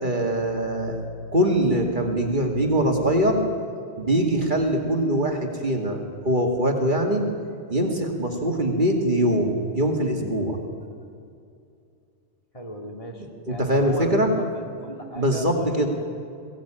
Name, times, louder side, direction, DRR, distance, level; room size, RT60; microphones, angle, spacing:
voice 1, 0.0-1.0 1.3-3.4 4.0-7.2 7.7-10.6 13.5-14.3 15.2-15.9, right 1 dB, 45° right, 2 dB, 2.4 m, -22 dB
voice 2, 12.5-15.9, equal, 30° left, 2 dB, 2.6 m, -36 dB
21.5 x 16.5 x 8.9 m, 2.5 s
omnidirectional pair, 1.2 m